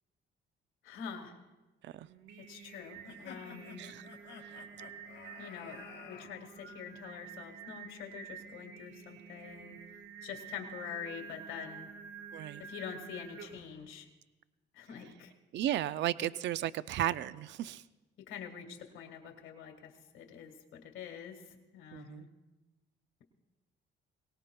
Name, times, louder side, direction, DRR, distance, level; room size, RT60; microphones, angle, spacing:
voice 1, 0.8-1.4 2.4-3.8 5.4-9.8 10.2-11.9 12.6-14.1 14.7-15.3 16.2-16.3 18.2-22.3, left 8 dB, 85° left, 3 dB, 1.6 m, -46 dB
Singing, 2.0-13.8, right 7 dB, 85° right, 1.2 m, -49 dB
sound 1, 3.0-6.3, left 7 dB, 65° left, 1.9 m, -51 dB
voice 2, 12.3-12.6 15.5-17.8 21.9-22.2, right 12 dB, 65° right, 15 dB, 0.4 m, -34 dB
23.0 x 18.5 x 2.3 m, 1.1 s
cardioid pair, 90°, 20 cm